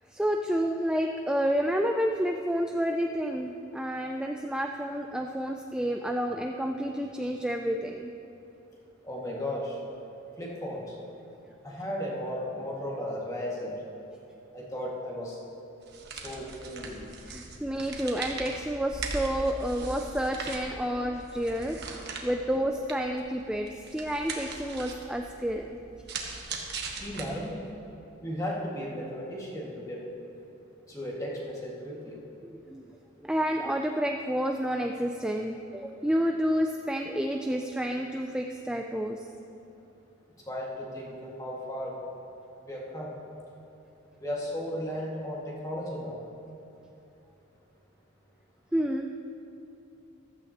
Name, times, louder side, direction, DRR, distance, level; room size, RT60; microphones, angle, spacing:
voice 1, 0.1-8.1 17.3-25.6 32.4-32.8 33.2-39.2 48.7-49.1, equal, 5° right, 3 dB, 0.3 m, -30 dB
voice 2, 9.0-9.8 10.4-11.0 11.6-13.8 14.5-15.4 16.1-17.1 27.0-27.6 28.2-30.0 30.9-32.2 40.5-42.0 42.7-43.2 44.2-46.2, equal, 15° left, -4 dB, 1.9 m, -35 dB
sound 1, 15.8-27.7, right 3 dB, 55° right, 1.3 m, -40 dB
14.5 x 13.0 x 2.9 m, 2.9 s
head